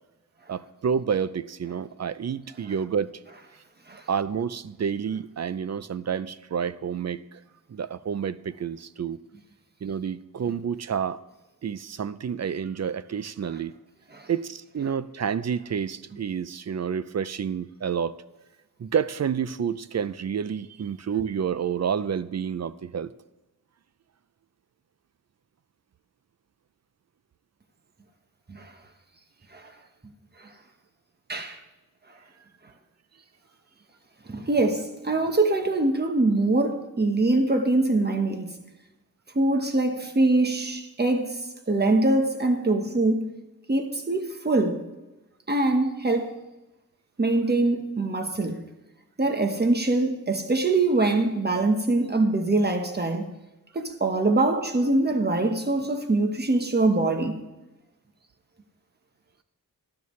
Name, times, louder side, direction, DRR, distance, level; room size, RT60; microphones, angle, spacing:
voice 1, 0.5-3.2 4.1-7.2 7.7-9.2 9.8-11.2 11.6-13.8 14.3-18.2 18.8-23.1, right 7 dB, 45° right, 0.4 m, -29 dB
voice 2, 34.3-38.5 39.3-41.4 41.7-43.2 43.7-44.8 45.5-46.3 47.2-48.6 49.2-53.3 53.7-57.4, right 2 dB, 25° right, 1.2 m, -23 dB
12.5 x 12.5 x 3.2 m
wide cardioid pair, 100°, 36 cm